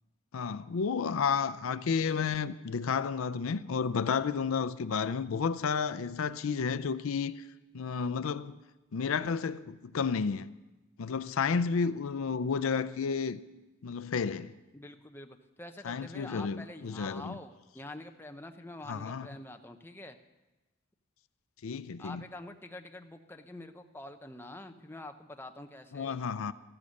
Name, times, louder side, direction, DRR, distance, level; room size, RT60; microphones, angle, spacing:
voice 1, 0.3-7.4 7.7-8.6 8.9-10.5 11.0-13.4 13.8-14.5 15.8-17.4 18.9-19.3 21.6-22.2 25.9-26.5, left 6 dB, 75° left, 0.4 m, -31 dB
voice 2, 14.7-20.2 22.0-26.2, left 2 dB, 10° left, 0.7 m, -46 dB
14.5 x 13.5 x 6.4 m
head